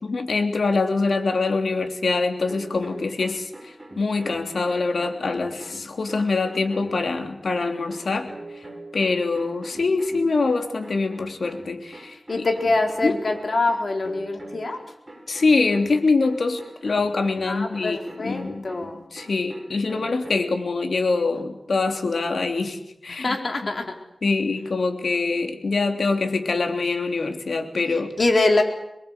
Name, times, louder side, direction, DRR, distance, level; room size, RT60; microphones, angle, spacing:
voice 1, 0.0-8.3 8.5-8.6 8.9-12.5 13.0-13.2 15.3-18.6 19.1-23.4 24.2-28.1, left 3 dB, 80° left, 4 dB, 3.2 m, -24 dB
sound 1, 2.5-20.6, right 1 dB, 20° right, 7.8 m, -43 dB
voice 2, 12.3-14.8 17.5-19.1 23.2-23.9 28.2-28.6, left 2 dB, 55° left, 3 dB, 4.3 m, -24 dB
25.0 x 22.0 x 8.3 m, 0.85 s
wide cardioid pair, 70°, 0 cm